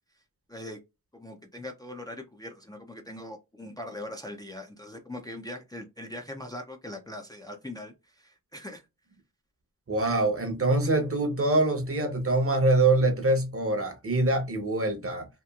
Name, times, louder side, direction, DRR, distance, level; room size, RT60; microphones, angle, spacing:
voice 1, 1.1-8.8, left 1 dB, 10° left, 0.4 m, -41 dB
voice 2, 9.9-15.3, right 2 dB, 45° right, 0.8 m, -24 dB
2.9 x 2.4 x 2.3 m
wide cardioid pair, 95°, 32 cm